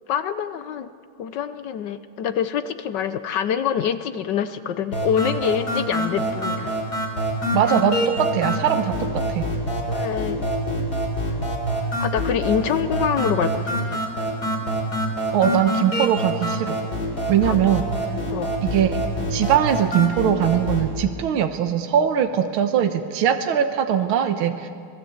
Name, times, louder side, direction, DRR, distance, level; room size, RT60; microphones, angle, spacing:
voice 1, 0.1-0.9 1.2-6.7 9.9-10.5 11.2-11.5 12.0-14.0 17.4-17.6 18.3-18.5, left 8 dB, 65° left, 11 dB, 1.3 m, -25 dB
sound 1, 4.9-20.9, equal, 45° left, 4.1 m, -26 dB
voice 2, 7.5-9.5 15.3-16.8 17.3-17.9 18.6-19.0 19.3-24.7, right 9 dB, 80° right, 7 dB, 1.8 m, -21 dB
26.0 x 19.5 x 8.0 m, 2.3 s
omnidirectional pair, 2.3 m